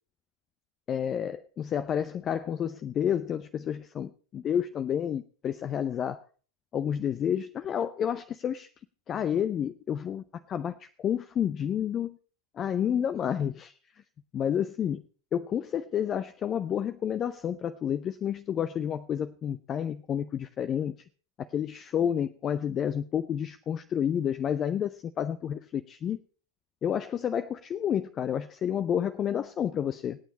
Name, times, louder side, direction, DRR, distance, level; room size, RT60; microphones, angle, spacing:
voice 1, 0.9-6.2 6.7-8.7 9.1-12.1 12.6-13.7 14.3-15.0 15.3-20.9 21.5-26.2 26.8-30.2, left 9 dB, 25° left, 0.6 m, -30 dB
26.0 x 9.2 x 4.2 m
figure-of-eight pair, 90°, 0 cm